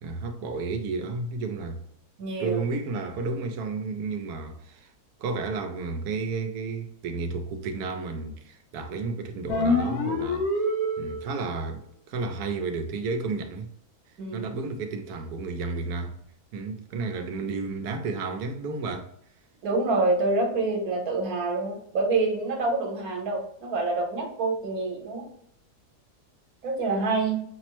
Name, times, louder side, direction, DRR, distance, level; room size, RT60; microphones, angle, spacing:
voice 1, 0.0-1.8 2.4-4.9 5.2-10.5 11.0-11.8 12.1-13.7 14.3-16.2 16.5-19.1, right 3 dB, 90° right, 1.2 m, -32 dB
voice 2, 2.2-2.6 14.2-14.5 19.6-25.2 26.6-27.4, right 3 dB, 70° right, 1.4 m, -27 dB
sound 1, 9.5-11.5, left 2 dB, 55° left, 0.9 m, -26 dB
5.8 x 2.0 x 2.9 m
omnidirectional pair, 1.7 m